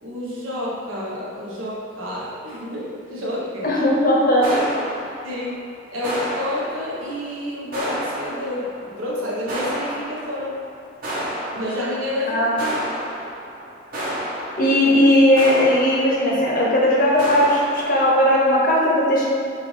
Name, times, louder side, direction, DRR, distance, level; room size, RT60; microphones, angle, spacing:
voice 1, 0.0-3.7 4.5-4.6 5.2-5.5 5.9-10.6 11.5-12.8, left 1 dB, 90° right, -6 dB, 1.1 m, -29 dB
voice 2, 3.6-4.5 12.3-12.5 14.6-19.2, left 1 dB, 45° left, -4 dB, 0.8 m, -17 dB
sound 1, 4.4-5.7 6.0-7.3 7.7-8.9 9.5-10.7 11.0-12.2 12.6-16.5 17.2-17.8, right 1 dB, 45° right, 1.0 m, -30 dB
5.8 x 2.5 x 3.2 m, 2.3 s
head